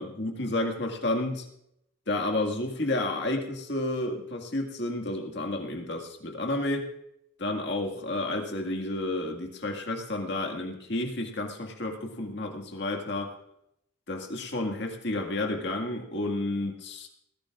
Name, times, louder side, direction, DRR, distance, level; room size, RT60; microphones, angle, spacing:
voice 1, 0.0-1.5 2.1-6.9 7.4-13.3 14.1-17.1, left 2 dB, 50° left, 2 dB, 1.9 m, -31 dB
20.0 x 16.0 x 2.5 m, 0.75 s
head